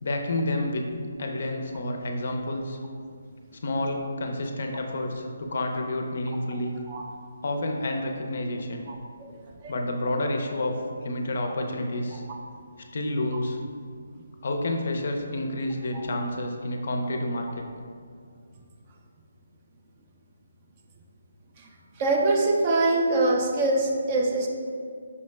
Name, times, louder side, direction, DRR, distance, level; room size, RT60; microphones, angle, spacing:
voice 1, 0.0-0.9 1.2-2.8 3.6-6.8 7.4-8.8 9.7-12.2 12.9-13.6 14.4-17.7, left 1 dB, 55° left, 3 dB, 0.4 m, -29 dB
voice 2, 8.9-9.4 9.6-9.8 11.4-11.5 12.3-12.4 15.9-16.1 21.6-21.7 22.0-24.5, right 2 dB, 25° right, 1 dB, 0.3 m, -24 dB
5.4 x 2.1 x 3.2 m, 2.1 s
hypercardioid pair, 165°, 0 cm